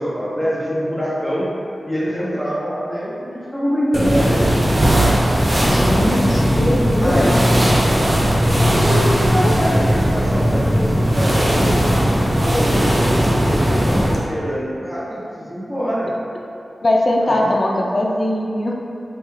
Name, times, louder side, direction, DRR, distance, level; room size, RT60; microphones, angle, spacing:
voice 1, 0.0-1.5 1.9-4.5 7.0-7.4 7.8-8.0 8.5-11.7 12.4-16.1 17.2-17.5, equal, ahead, -7 dB, 0.8 m, -24 dB
sound 1, 3.9-14.2, equal, 35° right, 0.6 m, -17 dB
voice 2, 5.7-7.3 9.4-9.5 16.8-18.7, left 1 dB, 45° left, -1 dB, 0.4 m, -20 dB
3.3 x 2.2 x 3.2 m, 2.6 s
cardioid pair, 50°, 0 cm